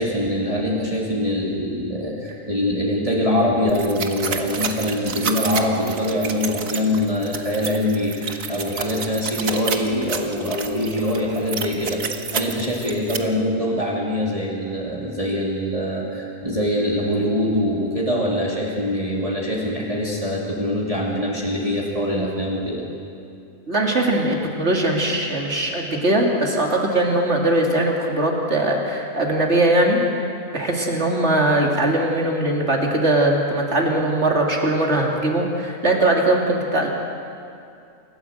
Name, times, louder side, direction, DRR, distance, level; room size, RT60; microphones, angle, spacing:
voice 1, 0.0-22.8, left 1 dB, 25° right, -4 dB, 2.9 m, -23 dB
sound 1, 3.7-13.2, right 5 dB, 75° right, 1.7 m, -30 dB
voice 2, 23.7-30.0 30.5-36.9, right 1 dB, 55° right, 0 dB, 3.1 m, -20 dB
28.0 x 14.5 x 8.1 m, 2.5 s
omnidirectional pair, 1.4 m